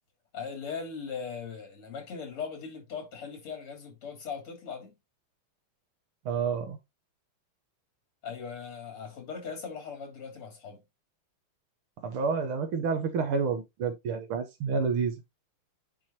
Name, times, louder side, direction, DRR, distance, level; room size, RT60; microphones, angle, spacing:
voice 1, 0.3-4.9 8.2-10.8, left 6 dB, 80° left, 3.9 m, -39 dB
voice 2, 6.3-6.8 12.0-15.2, right 5 dB, 80° right, 1.9 m, -29 dB
9.1 x 4.7 x 2.9 m
omnidirectional pair, 2.4 m